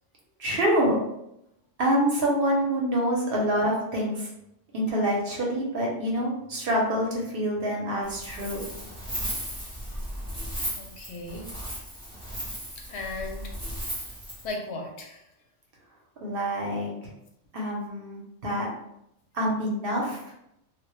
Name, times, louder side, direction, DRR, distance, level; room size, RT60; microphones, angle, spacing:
voice 1, 0.4-1.0 1.8-4.3 4.7-8.7 16.2-16.9 17.5-18.7 19.3-20.2, equal, 55° right, -2 dB, 0.7 m, -26 dB
Wind, 8.0-14.5, equal, 5° right, 0.7 m, -36 dB
voice 2, 10.8-11.5 12.8-13.4 14.4-15.2, left 2 dB, 65° left, 1 dB, 0.8 m, -36 dB
2.1 x 2.1 x 2.9 m, 0.80 s
omnidirectional pair, 1.3 m